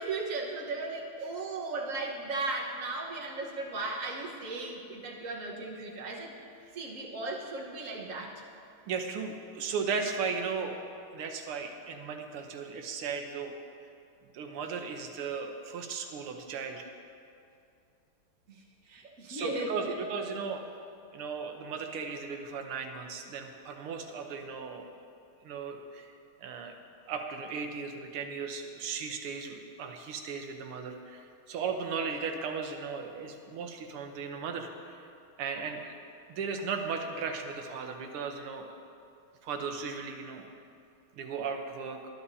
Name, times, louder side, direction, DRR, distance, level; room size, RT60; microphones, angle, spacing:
voice 1, 0.0-6.3 6.7-8.4 18.5-19.9, right 3 dB, 40° right, -1 dB, 1.5 m, -36 dB
voice 2, 8.9-10.8 11.1-13.6 14.3-16.9 19.3-20.6 21.1-24.9 25.4-26.1 26.4-26.8 27.1-35.1 35.4-35.9 36.3-38.7 39.4-40.5 41.2-42.0, right 5 dB, 80° right, 4 dB, 1.9 m, -36 dB
20.0 x 11.0 x 2.8 m, 2.5 s
omnidirectional pair, 2.4 m